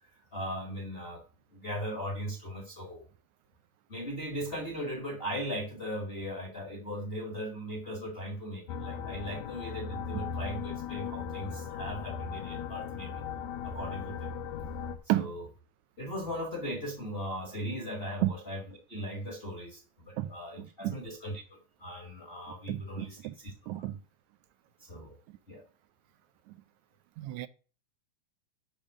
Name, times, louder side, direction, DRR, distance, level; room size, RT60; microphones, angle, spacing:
voice 1, 0.3-1.2 1.5-3.0 3.9-13.2 13.6-14.3 15.1-15.4 16.0-18.6 18.9-23.9 24.8-25.2 25.5-25.6, equal, 25° left, 1.6 m, -38 dB
sound 1, 8.7-15.0, left 6 dB, 75° left, 2.0 m, -38 dB
voice 2, 20.2-21.0 22.7-23.4 23.7-24.0 25.3-25.4 26.5-26.6 27.2-27.5, right 15 dB, 80° right, 1.9 m, -32 dB
10.5 x 3.6 x 6.3 m
omnidirectional pair, 3.4 m